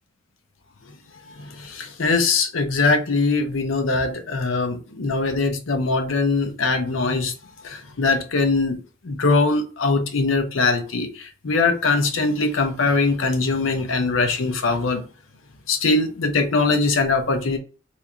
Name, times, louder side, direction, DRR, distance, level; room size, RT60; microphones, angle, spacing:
voice 1, 1.4-7.3 7.6-15.0 15.7-17.6, left 3 dB, 90° left, 0.7 m, -22 dB
3.1 x 2.6 x 3.4 m
head